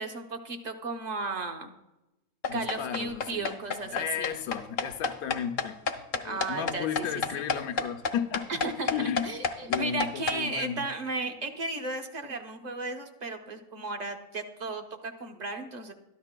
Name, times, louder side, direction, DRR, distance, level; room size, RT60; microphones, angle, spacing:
voice 1, 0.0-1.7 2.5-4.3 6.2-7.0 7.3-7.5 8.5-8.9 9.2-15.9, right 3 dB, 35° right, 5 dB, 0.8 m, -35 dB
sound 1, 2.4-10.4, left 4 dB, 45° left, 0.7 m, -30 dB
voice 2, 2.5-5.8 6.2-8.6 8.9-9.3 9.7-10.8, left 9 dB, 90° left, 5 dB, 1.1 m, -34 dB
13.0 x 11.5 x 2.2 m, 0.97 s
omnidirectional pair, 1.5 m